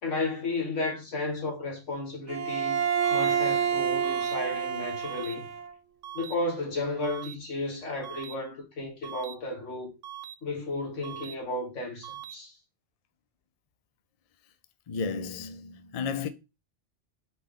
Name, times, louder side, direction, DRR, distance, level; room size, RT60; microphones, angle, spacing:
voice 1, 0.0-2.8 3.1-5.5 6.1-9.9 10.4-12.5, left 2 dB, 80° left, 1.8 m, -33 dB
Bowed string instrument, 2.3-5.7, right 7 dB, 85° right, 1.1 m, -28 dB
sound 1, 3.0-3.3 4.0-4.3 5.0-5.3 6.0-6.3 7.0-7.3 8.0-8.3 9.0-9.3 10.0-10.3 11.0-11.3 12.0-12.3, right 12 dB, 65° right, 0.7 m, -41 dB
voice 2, 14.9-16.3, left 5 dB, 50° left, 0.4 m, -33 dB
4.2 x 3.3 x 3.7 m
omnidirectional pair, 1.2 m